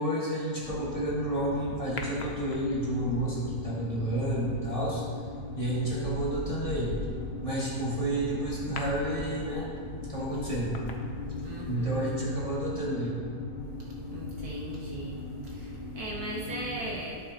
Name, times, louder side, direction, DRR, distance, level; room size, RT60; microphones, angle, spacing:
voice 1, 0.0-5.0 5.5-7.0 7.4-9.8 10.1-10.8 11.7-13.2, right 1 dB, 20° left, -7 dB, 1.7 m, -30 dB
sound 1, 0.6-16.8, left 2 dB, 75° left, 2.2 m, -39 dB
sound 2, 2.0-3.0 4.9-5.1 5.6-11.8 12.1-12.2, left 3 dB, 60° left, 0.6 m, -41 dB
voice 2, 11.4-12.1 14.1-17.2, right 1 dB, 60° right, -3 dB, 1.4 m, -38 dB
12.5 x 7.1 x 2.9 m, 2.1 s
omnidirectional pair, 2.0 m